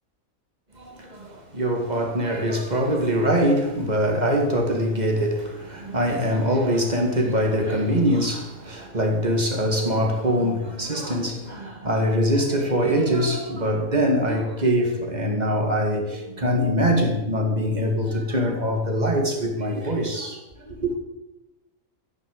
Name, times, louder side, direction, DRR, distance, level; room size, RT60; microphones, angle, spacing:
voice 1, 0.7-20.9, equal, 30° right, 2.4 m, -23 dB
14.5 x 6.7 x 8.0 m
omnidirectional pair, 1.5 m